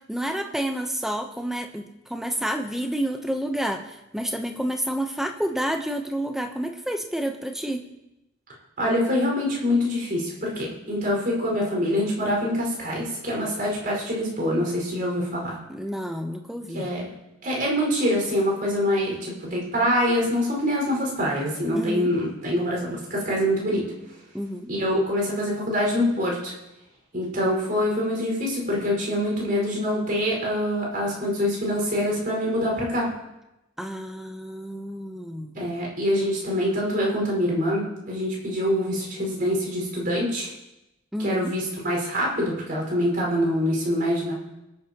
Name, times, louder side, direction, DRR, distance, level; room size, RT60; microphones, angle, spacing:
voice 1, 0.1-7.8 15.7-16.9 21.7-22.1 24.3-24.7 33.8-35.6 41.1-41.5, equal, ahead, 5 dB, 0.9 m, -29 dB
voice 2, 8.8-15.6 16.7-17.0 17.4-23.8 24.7-26.5 27.1-33.1 35.6-40.5 41.2-44.3, equal, 45° right, -3 dB, 5.3 m, -25 dB
23.0 x 9.8 x 3.0 m, 0.94 s
head